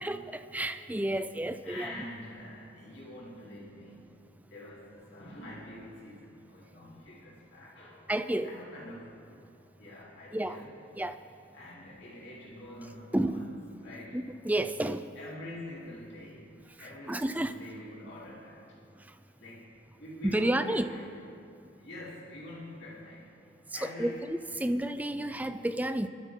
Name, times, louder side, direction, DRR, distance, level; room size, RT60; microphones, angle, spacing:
voice 1, 0.0-1.9 8.1-8.5 10.3-10.6 10.9-11.2 13.1-13.4 14.1-15.1 16.8-17.5 20.2-20.9 23.7-26.1, right 1 dB, 10° right, 10 dB, 0.4 m, -31 dB
voice 2, 1.6-4.1 4.5-8.1 8.4-9.3 9.8-10.7 11.5-13.5 13.8-14.2 15.2-16.5 16.8-18.8 19.4-21.0 21.8-24.2 24.6-24.7, left 1 dB, 60° left, -6 dB, 3.5 m, -45 dB
25.0 x 12.5 x 3.7 m, 2.6 s
head